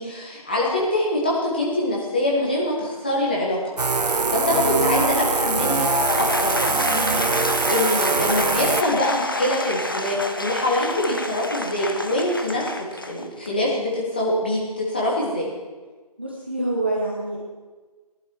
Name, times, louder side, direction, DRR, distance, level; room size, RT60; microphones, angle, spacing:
voice 1, 0.0-3.6 4.1-5.8 6.2-7.4 7.7-12.6 13.1-15.5, left 1 dB, 15° left, -4 dB, 1.6 m, -24 dB
sound 1, 3.8-8.8, right 4 dB, 85° right, 0.9 m, -23 dB
voice 2, 4.5-5.0 16.2-17.4, right 2 dB, 15° right, -4 dB, 0.8 m, -27 dB
Applause / Crowd, 5.4-13.6, left 1 dB, 35° left, 0.6 m, -29 dB
17.5 x 11.5 x 4.6 m, 1.3 s
figure-of-eight pair, 180°, 20 cm